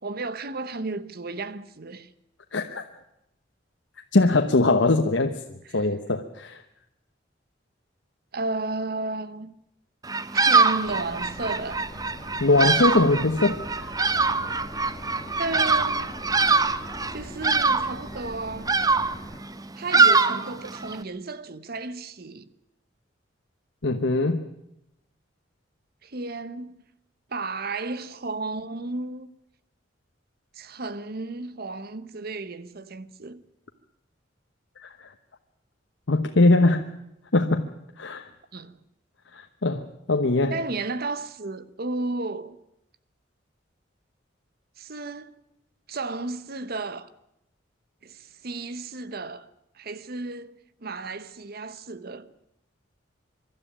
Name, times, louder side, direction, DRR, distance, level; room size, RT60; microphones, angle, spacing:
voice 1, 0.0-2.1 5.7-5.9 8.3-9.5 10.3-11.9 15.4-16.2 17.1-18.8 19.7-22.5 26.0-26.8 27.3-29.3 30.5-33.4 38.5-38.8 40.5-42.6 44.8-45.3 45.9-47.1 48.0-49.5 49.7-52.3, right 3 dB, 55° right, 1.1 m, -33 dB
voice 2, 2.5-2.8 4.1-5.3 5.7-6.6 12.4-13.9 23.8-24.4 34.8-35.1 36.1-36.9 37.3-37.6 38.0-38.3 39.4-40.6, left 2 dB, 90° left, 1.1 m, -21 dB
Bird vocalization bird call bird song, 10.0-21.0, right 4 dB, 20° right, 0.8 m, -23 dB
sound 1, 10.8-19.4, left 1 dB, 20° left, 2.7 m, -42 dB
24.0 x 12.5 x 10.0 m
head